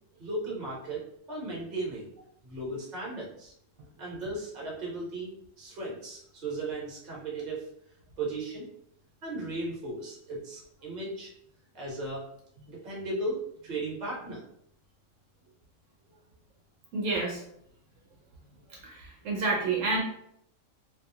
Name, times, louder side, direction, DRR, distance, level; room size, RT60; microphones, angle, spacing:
voice 1, 0.2-2.1 2.4-3.5 4.0-7.6 8.2-8.7 9.2-11.3 11.7-12.2 12.7-14.4, right 2 dB, 35° right, -4 dB, 1.0 m, -36 dB
voice 2, 16.9-17.4 18.7-20.0, right 3 dB, 75° right, -2 dB, 1.0 m, -29 dB
2.6 x 2.3 x 2.7 m, 0.71 s
omnidirectional pair, 1.3 m